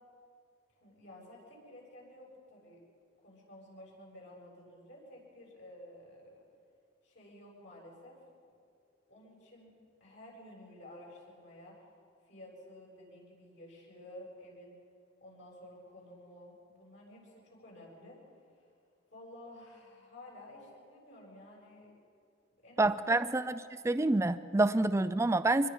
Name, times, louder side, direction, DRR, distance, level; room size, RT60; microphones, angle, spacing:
voice 1, 0.8-2.8 3.2-6.4 7.0-8.2 9.1-9.7 10.0-11.8 12.3-14.8 15.2-18.2 18.5-18.7 19.1-21.9 22.6-23.3 24.5-24.6, left 1 dB, 70° left, -3 dB, 7.3 m, -52 dB
voice 2, 22.8-23.5 23.8-25.7, right 2 dB, 15° right, 12 dB, 0.4 m, -27 dB
25.0 x 21.5 x 5.5 m, 2.4 s
head